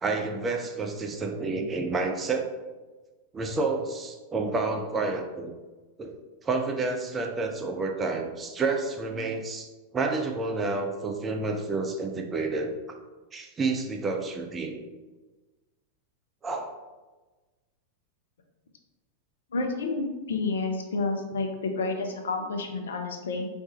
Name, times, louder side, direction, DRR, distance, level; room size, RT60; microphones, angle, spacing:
voice 1, 0.0-2.5 3.3-5.5 6.0-6.1 6.4-9.7 9.9-12.7 13.3-14.8 16.4-16.7, right 3 dB, 20° right, 3 dB, 0.5 m, -29 dB
voice 2, 19.5-23.5, left 3 dB, 65° left, 4 dB, 0.5 m, -30 dB
4.5 x 3.3 x 2.8 m, 1.2 s
figure-of-eight pair, 90°, 0 cm